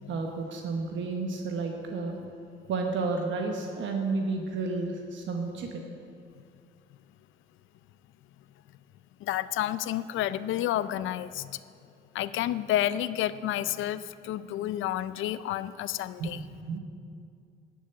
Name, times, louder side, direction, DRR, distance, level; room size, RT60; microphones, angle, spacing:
voice 1, 0.1-2.2 2.7-5.8 16.2-16.8, right 3 dB, 70° right, 3 dB, 1.1 m, -31 dB
voice 2, 9.2-11.6 12.1-16.4, left 12 dB, 80° left, 15 dB, 0.4 m, -30 dB
11.5 x 6.7 x 7.9 m, 2.4 s
cardioid pair, 90°, 20 cm